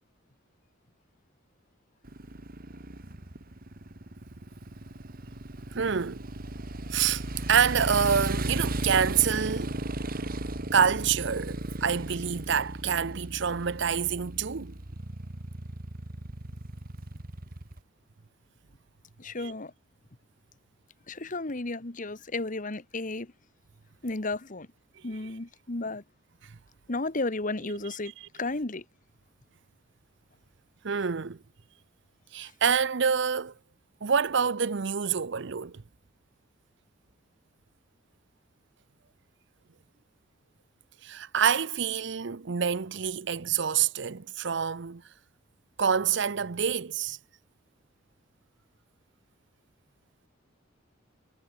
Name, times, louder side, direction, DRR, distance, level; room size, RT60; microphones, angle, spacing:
Motorcycle, 2.0-17.8, right 1 dB, 45° right, 1.8 m, -36 dB
voice 1, 5.7-6.3 6.9-9.8 10.7-14.8 19.4-19.5 26.4-26.6 30.8-31.4 32.3-33.5 34.0-35.8 41.0-45.0 45.8-47.2, right 7 dB, 60° right, 0.7 m, -27 dB
voice 2, 19.2-19.7 21.1-23.3 24.0-24.7 25.0-26.0 26.9-28.8 32.4-32.5, left 2 dB, 40° left, 1.4 m, -33 dB
head